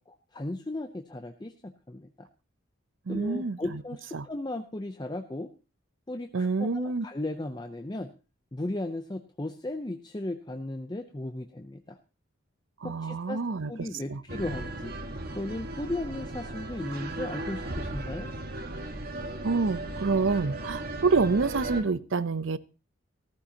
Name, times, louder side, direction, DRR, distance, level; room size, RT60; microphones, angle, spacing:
voice 1, 0.0-2.3 3.1-5.5 6.1-8.1 8.5-12.0 12.8-13.4 13.7-14.9 15.3-18.3, left 1 dB, 20° left, 0.6 m, -36 dB
voice 2, 3.1-3.8 4.1-4.3 6.3-7.1 12.8-14.2 19.4-22.6, right 4 dB, 70° right, 0.6 m, -27 dB
sound 1, 14.3-21.8, right 2 dB, 45° right, 1.5 m, -36 dB
15.5 x 14.0 x 2.9 m
head